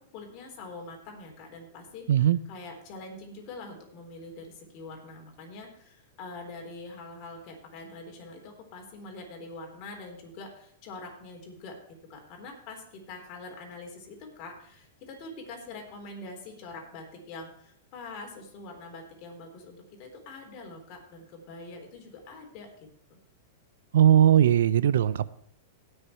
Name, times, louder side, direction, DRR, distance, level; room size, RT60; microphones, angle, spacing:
voice 1, 0.0-11.8 12.1-23.2, left 3 dB, 45° left, 2 dB, 3.8 m, -44 dB
voice 2, 2.1-2.4 23.9-25.3, right 10 dB, 75° right, 17 dB, 0.6 m, -19 dB
18.5 x 6.6 x 4.5 m, 0.65 s
hypercardioid pair, 120°, 0 cm